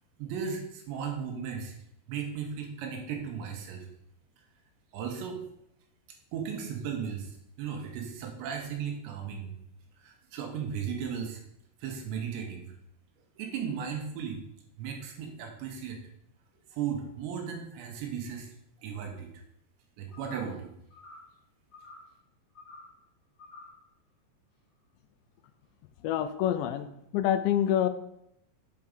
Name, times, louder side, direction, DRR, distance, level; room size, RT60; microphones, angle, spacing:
voice 1, 0.2-1.8 2.1-3.9 4.9-5.4 6.3-9.5 10.0-11.4 11.8-12.7 13.4-14.5 14.8-16.0 16.7-18.5 18.8-19.3 20.0-20.7, right 7 dB, 85° right, 3 dB, 3.4 m, -36 dB
sound 1, 20.1-20.6 20.9-21.3 21.7-22.1 22.5-23.0 23.4-23.8, left 3 dB, 45° left, 3.4 m, -50 dB
voice 2, 26.0-26.9 27.1-27.9, left 11 dB, 85° left, 11 dB, 2.8 m, -26 dB
7.6 x 4.7 x 5.3 m, 0.76 s
omnidirectional pair, 5.1 m